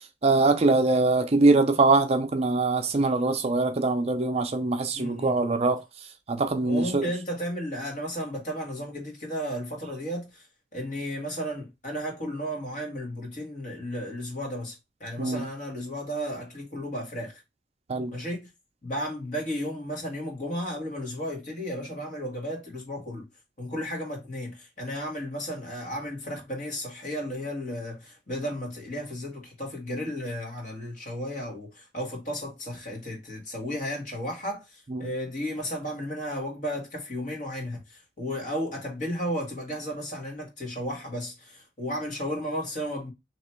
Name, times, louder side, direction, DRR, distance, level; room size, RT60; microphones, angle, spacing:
voice 1, 0.2-5.8 6.3-7.1 15.2-15.4 17.9-18.1, right 3 dB, 35° right, 0.5 m, -23 dB
voice 2, 3.1-3.6 4.9-5.6 6.6-10.5 10.7-17.4 18.1-18.5 18.8-23.3 23.6-43.1, equal, 45° left, 1.8 m, -34 dB
3.1 x 3.0 x 4.3 m
head